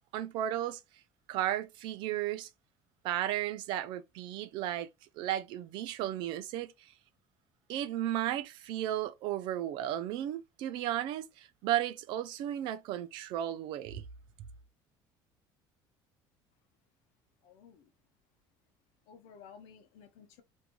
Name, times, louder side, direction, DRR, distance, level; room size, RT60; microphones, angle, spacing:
voice 1, 0.1-0.8 1.3-2.5 3.0-4.9 5.2-6.9 7.7-14.0, right 12 dB, 60° right, 0.4 m, -34 dB
voice 2, 17.4-17.9 19.1-20.4, left 7 dB, 85° left, 0.7 m, -54 dB
2.6 x 2.2 x 2.9 m
cardioid pair, 165°, 9 cm